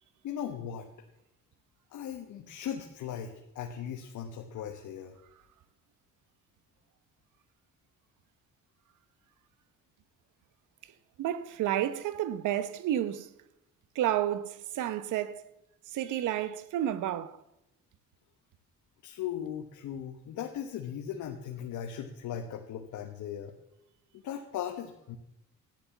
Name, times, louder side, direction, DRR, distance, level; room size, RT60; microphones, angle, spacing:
voice 1, 0.2-0.9 1.9-5.2 19.0-23.5 24.1-25.2, left 9 dB, 80° left, 1.4 m, -38 dB
voice 2, 11.2-13.3 13.9-15.4 15.9-17.4, right 12 dB, 80° right, 0.9 m, -31 dB
13.5 x 10.5 x 7.1 m
cardioid pair, 90°, 30 cm